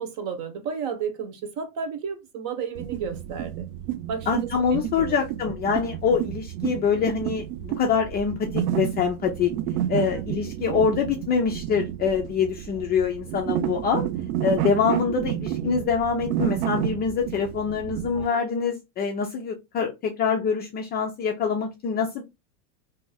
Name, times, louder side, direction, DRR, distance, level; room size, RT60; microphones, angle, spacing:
voice 1, 0.0-3.7 4.1-4.5 5.0-5.1 9.9-10.1 18.1-18.4, right 6 dB, 45° right, 1.0 m, -32 dB
sound 1, 2.7-18.3, right 12 dB, 70° right, 0.5 m, -30 dB
voice 2, 4.3-9.5 9.9-14.1 14.4-22.2, left 6 dB, 25° left, 0.3 m, -25 dB
2.7 x 2.4 x 3.9 m
supercardioid pair, 125°, 44 cm